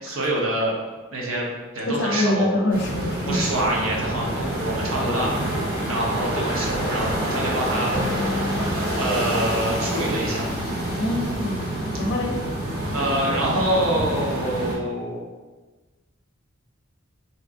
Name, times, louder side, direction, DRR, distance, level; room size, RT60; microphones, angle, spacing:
voice 1, 0.0-0.7 1.1-1.5 1.7-2.5 3.3-5.4 5.9-7.9 9.0-10.5 12.9-15.2, right 1 dB, 75° right, -3 dB, 0.8 m, -25 dB
voice 2, 1.9-3.4 11.0-11.7 11.9-12.3, left 1 dB, 55° left, 1 dB, 0.5 m, -24 dB
sound 1, 2.7-14.7, right 1 dB, 40° right, 1.0 m, -27 dB
sound 2, 7.9-11.4, left 1 dB, 20° left, 0.9 m, -34 dB
3.5 x 2.8 x 2.6 m, 1.3 s
head